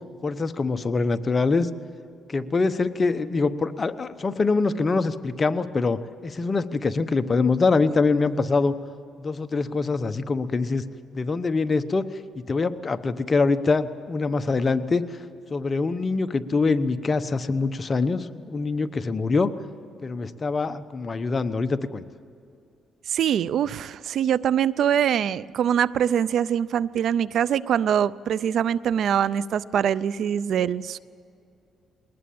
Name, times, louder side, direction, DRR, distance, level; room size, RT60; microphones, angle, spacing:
voice 1, 0.2-1.7 2.3-8.7 9.2-10.8 11.1-12.1 12.5-15.0 15.5-19.5 20.0-22.0, left 4 dB, 35° left, 10 dB, 1.0 m, -24 dB
voice 2, 23.1-31.0, right 9 dB, 70° right, 20 dB, 0.5 m, -23 dB
21.5 x 19.0 x 8.7 m, 2.5 s
cardioid pair, 90°, 0 cm